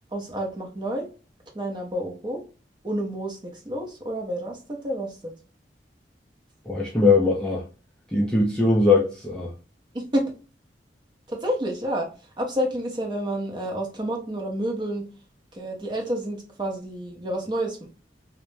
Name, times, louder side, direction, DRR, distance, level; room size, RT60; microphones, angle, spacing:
voice 1, 0.1-1.1 1.5-2.4 2.8-5.3 9.9-10.2 11.3-12.1 12.4-15.0 15.5-17.9, right 1 dB, 25° right, 0.7 m, -29 dB
voice 2, 6.7-7.6 8.1-9.5, left 3 dB, 5° left, 0.4 m, -20 dB
2.4 x 2.1 x 3.0 m
head